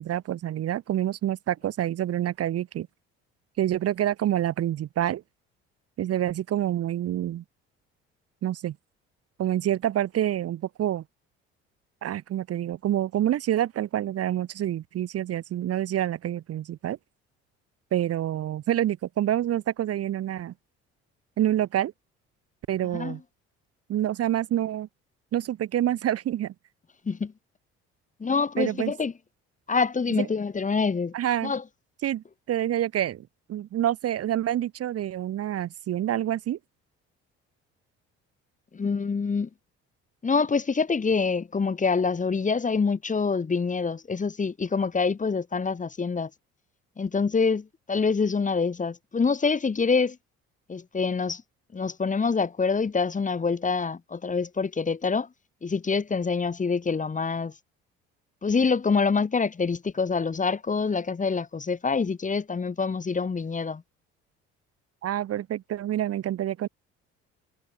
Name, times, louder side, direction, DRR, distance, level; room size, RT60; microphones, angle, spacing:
voice 1, 0.0-2.9 3.6-5.2 6.0-7.4 8.4-8.8 9.4-11.0 12.0-17.0 17.9-20.5 21.4-21.9 22.7-23.2 23.9-24.9 25.3-26.5 28.6-28.9 30.2-30.3 31.1-31.5 32.0-36.6 65.0-66.7, right 12 dB, 50° right, 0.8 m, -27 dB
voice 2, 28.2-29.1 29.7-31.1 31.4-31.6 38.7-39.5 40.2-46.3 47.0-50.2 50.7-51.4 51.7-55.3 55.6-57.5 58.4-63.8, left 5 dB, 25° left, 1.1 m, -26 dB
hypercardioid pair, 60°, 32 cm